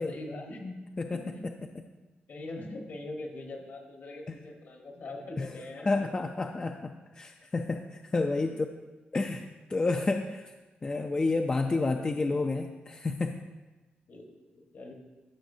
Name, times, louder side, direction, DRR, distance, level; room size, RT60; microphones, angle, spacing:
voice 1, 0.0-0.8 1.1-1.5 2.0-6.1 8.4-8.5 11.7-12.5 14.1-14.9, left 2 dB, 60° left, 1 dB, 1.3 m, -43 dB
voice 2, 1.0-1.5 5.4-5.5 5.9-8.7 9.1-9.4 9.7-10.5 10.8-13.4, left 3 dB, 25° left, 4 dB, 0.4 m, -30 dB
14.0 x 6.2 x 2.7 m, 1.2 s
wide cardioid pair, 130°, 4 cm